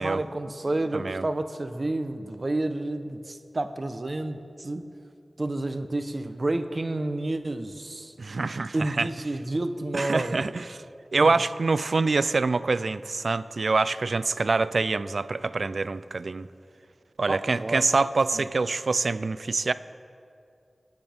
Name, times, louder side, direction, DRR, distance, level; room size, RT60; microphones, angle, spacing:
voice 1, 0.0-4.8 5.4-8.1 8.7-10.4 11.2-11.4 17.3-17.8 18.3-18.5, right 2 dB, 50° right, 8 dB, 0.9 m, -30 dB
voice 2, 0.9-1.2 8.2-9.1 9.9-10.8 11.1-16.5 17.2-19.7, right 3 dB, 75° right, 15 dB, 0.4 m, -25 dB
26.5 x 9.6 x 3.6 m, 2.5 s
wide cardioid pair, 50°, 0 cm